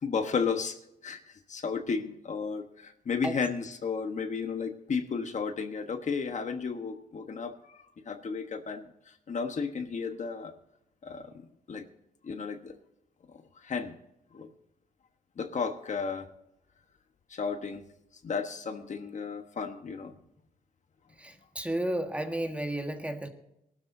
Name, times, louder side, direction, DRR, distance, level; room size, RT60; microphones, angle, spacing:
voice 1, 0.0-10.5 11.0-11.9 12.2-12.7 13.3-13.9 14.3-14.5 15.4-16.3 17.3-17.8 18.2-20.1, left 5 dB, 50° left, 7 dB, 1.2 m, -33 dB
voice 2, 21.2-23.3, right 1 dB, 10° right, 5 dB, 1.5 m, -32 dB
19.5 x 12.5 x 2.7 m, 0.83 s
cardioid pair, 105°, 16 cm